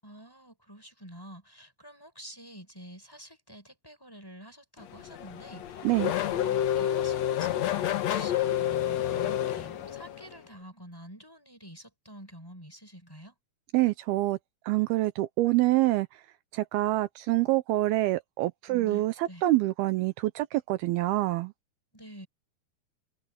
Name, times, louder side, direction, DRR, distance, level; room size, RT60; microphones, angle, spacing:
voice 1, 0.0-5.9 6.2-13.3 18.7-19.4 21.9-22.3, equal, 5° left, 7.8 m, -48 dB
Race car auto racing / Accelerating revving vroom, 4.8-10.4, left 11 dB, 75° left, 1.5 m, -29 dB
voice 2, 13.7-14.4 14.7-16.1 16.5-21.5, right 17 dB, 80° right, 2.3 m, -26 dB
omnidirectional pair, 5.0 m